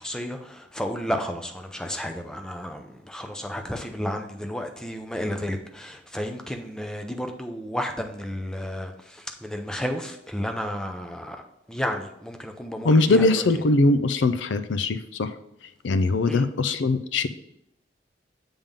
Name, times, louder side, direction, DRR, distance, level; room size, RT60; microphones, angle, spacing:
voice 1, 0.0-11.4 11.7-13.5 16.3-16.4, equal, 5° left, 4 dB, 0.5 m, -32 dB
voice 2, 12.8-15.3 15.8-17.3, left 2 dB, 80° left, 11 dB, 0.5 m, -21 dB
7.2 x 3.6 x 5.2 m, 0.78 s
head